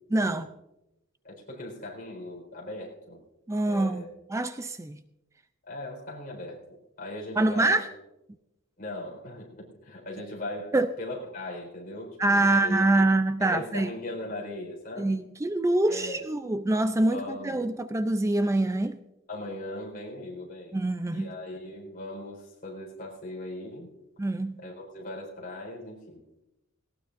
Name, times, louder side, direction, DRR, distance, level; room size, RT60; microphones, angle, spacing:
voice 1, 0.1-0.5 3.5-4.0 4.3-5.0 7.4-7.9 10.7-10.9 12.2-13.9 15.0-19.0 20.7-21.3 24.2-24.6, right 2 dB, 15° right, 10 dB, 0.4 m, -25 dB
voice 2, 1.2-3.2 3.6-4.1 5.6-6.6 7.0-7.9 8.8-12.9 13.4-15.1 15.9-16.2 17.1-17.8 19.3-20.8 21.1-23.9 24.6-26.4, left 1 dB, 45° left, -1 dB, 4.4 m, -39 dB
18.5 x 17.5 x 2.6 m, 0.92 s
head